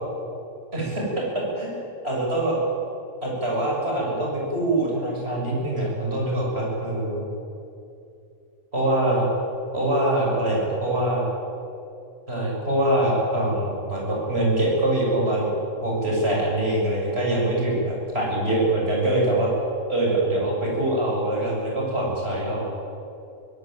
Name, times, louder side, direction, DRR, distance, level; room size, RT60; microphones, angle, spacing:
voice 1, 0.7-1.2 1.5-2.6 3.2-7.3 8.7-9.2 9.7-11.2 12.3-15.5 15.8-19.5 19.9-22.7, right 1 dB, 45° right, -3 dB, 7.6 m, -24 dB
25.0 x 17.0 x 9.4 m, 2.7 s
omnidirectional pair, 1.4 m